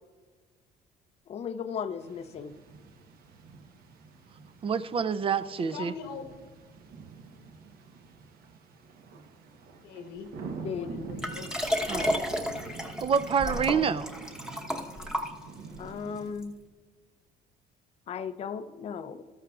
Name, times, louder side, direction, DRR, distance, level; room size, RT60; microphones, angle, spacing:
voice 1, 1.3-2.5 10.6-10.9 11.9-12.1 15.8-16.5 18.1-19.2, left 7 dB, 40° left, 10 dB, 0.5 m, -36 dB
sound 1, 2.0-16.3, right 4 dB, 65° right, 1.0 m, -46 dB
voice 2, 4.6-5.9 11.9-12.0 13.0-14.1, right 6 dB, 35° right, 13 dB, 0.4 m, -27 dB
voice 3, 5.5-6.3 9.8-10.3 10.6-11.5 14.6-15.1, left 6 dB, 90° left, 5 dB, 1.2 m, -42 dB
Liquid, 11.2-15.8 16.4-16.5, equal, 5° right, 1.0 m, -32 dB
14.0 x 13.0 x 2.4 m, 1.4 s
cardioid pair, 110°, 17 cm